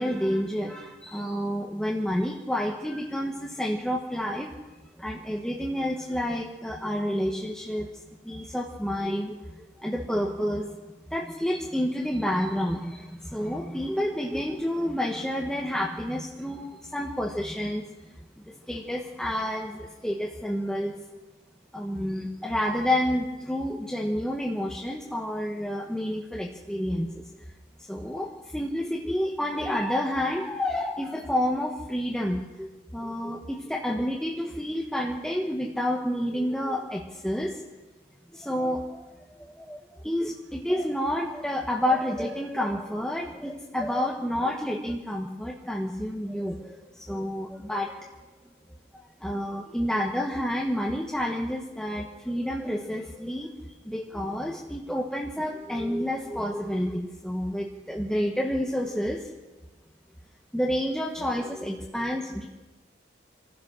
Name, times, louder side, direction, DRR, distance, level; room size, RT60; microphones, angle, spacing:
voice 1, 0.0-4.5 5.0-7.9 8.2-10.8 11.1-17.8 18.5-21.0 21.7-27.3 27.9-37.6 38.3-48.1 49.2-53.5 53.8-59.3 60.5-62.5, equal, 5° left, -2 dB, 1.3 m, -29 dB
25.5 x 15.5 x 6.5 m, 1.2 s
head